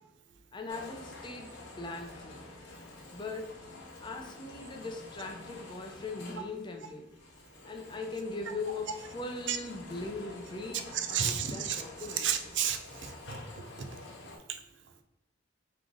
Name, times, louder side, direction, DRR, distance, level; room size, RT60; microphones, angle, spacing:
voice 1, 0.5-2.5 3.1-3.6 4.0-7.1 7.6-12.5, left 3 dB, 25° left, 3 dB, 0.5 m, -40 dB
sound 1, 0.7-14.4, left 2 dB, 65° left, 0.9 m, -49 dB
voice 2, 10.9-11.8 12.2-13.4 13.8-13.9 14.5-14.6, right 8 dB, 70° right, 7 dB, 0.5 m, -32 dB
3.8 x 3.2 x 3.6 m, 0.90 s
head